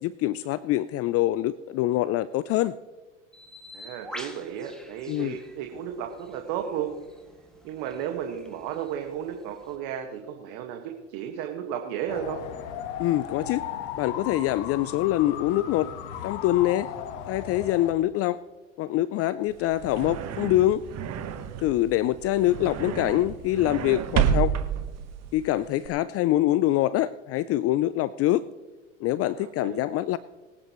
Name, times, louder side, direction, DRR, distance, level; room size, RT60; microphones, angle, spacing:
voice 1, 0.0-2.7 5.1-5.4 13.0-13.6 14.0-15.9 16.2-16.9 17.3-18.4 18.8-20.8 21.6-24.6 25.3-28.5 29.0-30.2, left 14 dB, 40° left, 17 dB, 0.4 m, -24 dB
Bird, 3.3-9.8, equal, ahead, 2.1 m, -47 dB
voice 2, 3.7-6.9 7.6-12.4 29.4-29.8, right 9 dB, 60° right, 3 dB, 1.7 m, -34 dB
sound 1, 12.1-17.9, left 9 dB, 65° left, 1.4 m, -36 dB
sound 2, 19.5-25.9, right 9 dB, 45° right, 1.3 m, -30 dB
23.0 x 9.5 x 3.1 m, 1.2 s
hypercardioid pair, 90°, 37 cm